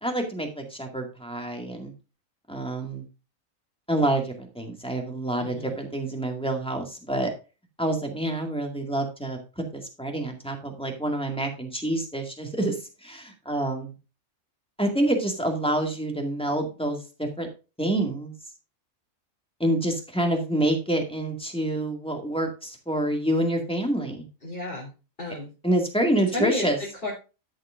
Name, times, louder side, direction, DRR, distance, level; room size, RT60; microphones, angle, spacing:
voice 1, 0.0-1.9 2.5-3.0 3.9-7.3 7.8-13.9 14.8-17.5 17.8-18.3 19.6-24.3 25.6-26.8, right 1 dB, 5° left, 1 dB, 2.0 m, -27 dB
voice 2, 5.4-5.8 24.4-24.9 25.2-25.5 26.3-27.1, left 3 dB, 40° left, -5 dB, 3.7 m, -32 dB
12.5 x 7.3 x 2.5 m, 0.31 s
omnidirectional pair, 1.4 m